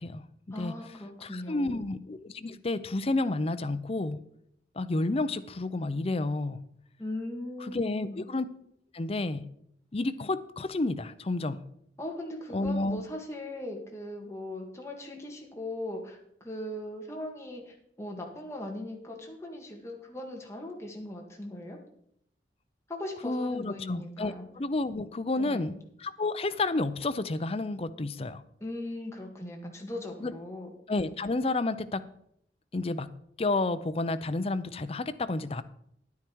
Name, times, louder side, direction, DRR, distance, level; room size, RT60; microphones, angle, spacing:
voice 1, 0.0-0.7 1.2-4.2 4.8-6.6 7.6-8.5 8.9-9.5 9.9-11.6 12.5-13.0 23.2-25.7 26.0-28.4 30.2-30.3 30.9-32.1 32.7-33.1 33.4-35.6, left 2 dB, 35° left, 12 dB, 0.5 m, -30 dB
voice 2, 0.5-1.8 7.0-8.3 12.0-21.8 22.9-24.5 25.4-25.8 28.6-30.7, left 1 dB, 15° left, 0 dB, 1.9 m, -39 dB
10.5 x 9.5 x 4.6 m, 0.71 s
head